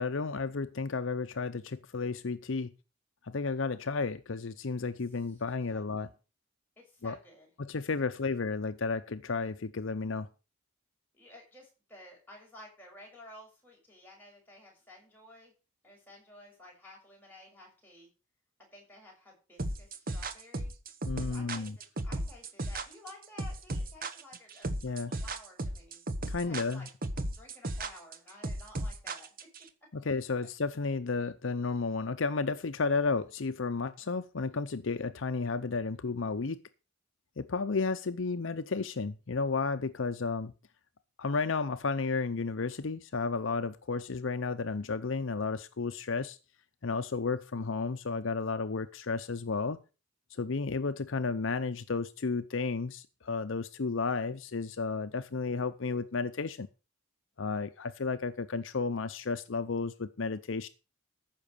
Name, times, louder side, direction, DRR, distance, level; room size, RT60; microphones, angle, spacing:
voice 1, 0.0-2.7 3.2-6.1 7.0-7.2 7.6-10.3 21.1-21.7 24.8-25.1 26.3-26.9 29.9-36.6 37.4-40.5 41.2-46.4 46.8-49.8 50.3-56.7 57.4-60.7, left 4 dB, 65° left, 11 dB, 0.7 m, -32 dB
voice 2, 5.1-5.4 5.7-6.1 6.8-7.5 8.0-8.3 11.1-15.5 15.8-18.1 18.7-20.7 21.3-26.0 26.4-26.9 27.3-29.3, left 1 dB, 10° left, -3 dB, 6.6 m, -54 dB
sound 1, 19.6-29.6, right 1 dB, 45° right, 1.1 m, -35 dB
14.5 x 5.9 x 6.7 m, 0.33 s
head